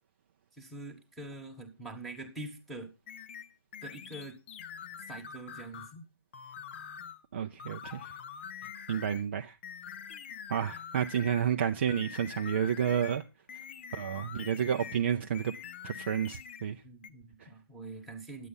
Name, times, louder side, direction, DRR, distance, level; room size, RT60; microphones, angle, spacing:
voice 1, 0.5-2.9 3.8-4.4 5.1-6.0 16.8-18.5, right 2 dB, ahead, 1.3 m, -44 dB
sound 1, 3.1-6.0 6.3-7.2 7.6-9.3 9.6-11.5 11.9-15.1 15.3-16.7 17.0-17.1, left 8 dB, 30° left, 0.5 m, -45 dB
voice 2, 7.3-8.0 8.9-9.5 10.5-13.2 13.9-15.5 15.8-16.8, right 8 dB, 30° right, 0.5 m, -30 dB
10.0 x 8.1 x 5.5 m
hypercardioid pair, 165°, 13 cm